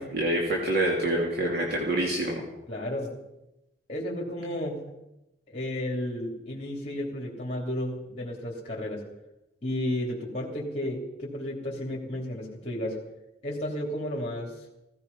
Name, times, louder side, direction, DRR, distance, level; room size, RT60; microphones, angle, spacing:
voice 1, 0.0-2.4, right 1 dB, 60° right, -1 dB, 2.8 m, -26 dB
voice 2, 2.7-3.2 3.9-4.8 5.5-9.0 9.6-13.0 13.4-14.7, left 1 dB, 35° left, -2 dB, 3.0 m, -32 dB
16.5 x 16.0 x 5.4 m, 0.91 s
head